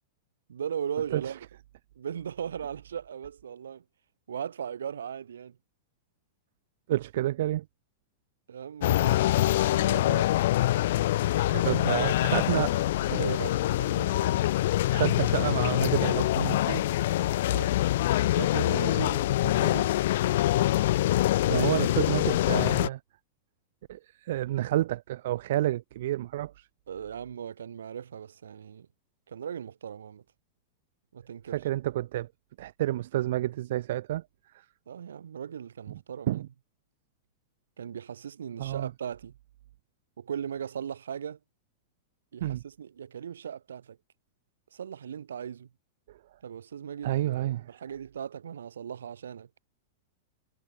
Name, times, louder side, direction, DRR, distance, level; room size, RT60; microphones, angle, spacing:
voice 1, 0.5-1.4 2.0-3.8 4.3-5.6 8.5-9.4 9.7-10.3 11.5-12.7 13.0-14.5 17.4-17.8 18.4-19.9 26.9-28.9 29.3-30.2 31.1-31.6 34.9-36.4 37.8-39.3 40.2-41.4 42.3-44.0 44.7-45.7 46.4-49.5, right 8 dB, 90° right, 4.2 m, -38 dB
voice 2, 6.9-7.7 11.5-12.7 14.9-16.8 19.0-19.1 21.5-23.0 23.9-26.7 31.5-32.3 32.6-34.2 34.5-34.6 35.9-36.0 36.3-36.5 38.6-38.9 42.4-42.6 47.0-47.7, right 14 dB, 70° right, 2.8 m, -29 dB
sound 1, 8.8-22.9, left 14 dB, 65° left, 0.4 m, -25 dB
hypercardioid pair, 120°, 0 cm